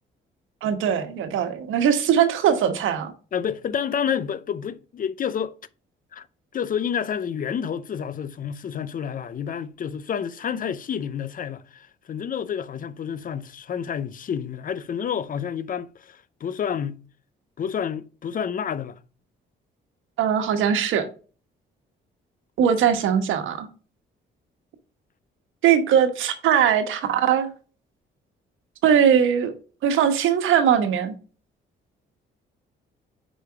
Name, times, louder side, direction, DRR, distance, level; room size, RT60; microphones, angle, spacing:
voice 1, 0.6-3.1 20.2-21.1 22.6-23.7 25.6-27.5 28.8-29.5 29.8-31.1, right 8 dB, 80° right, 1.2 m, -20 dB
voice 2, 3.3-5.6 6.1-6.2 6.5-17.0 17.6-19.0, left 8 dB, 45° left, 0.6 m, -29 dB
5.0 x 4.8 x 4.6 m
cardioid pair, 90°, 20 cm